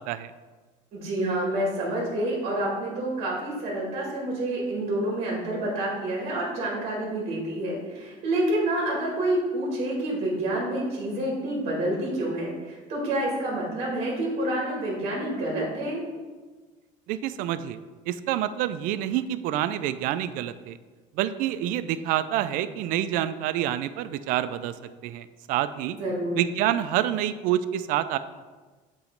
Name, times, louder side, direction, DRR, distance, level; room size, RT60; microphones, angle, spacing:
voice 1, 0.9-16.0 26.0-26.4, right 1 dB, 40° right, -4 dB, 1.9 m, -28 dB
voice 2, 17.1-17.8 18.1-20.8 21.2-24.7 25.0-26.0 26.4-28.2, right 12 dB, 60° right, 13 dB, 0.4 m, -27 dB
8.2 x 3.1 x 5.1 m, 1.3 s
cardioid pair, 155°, 16 cm